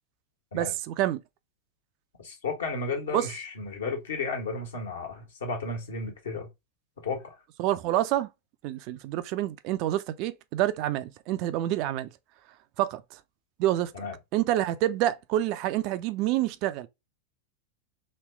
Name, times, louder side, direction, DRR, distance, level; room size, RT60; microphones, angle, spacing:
voice 1, 0.5-1.2 3.1-3.3 7.6-8.3 8.6-12.1 12.8-13.0 13.6-13.9 14.3-16.9, right 13 dB, 45° right, 0.4 m, -27 dB
voice 2, 2.2-6.5 7.0-7.4 13.9-14.1, left 4 dB, 65° left, 1.4 m, -33 dB
3.1 x 2.9 x 3.3 m
figure-of-eight pair, 90°, 0 cm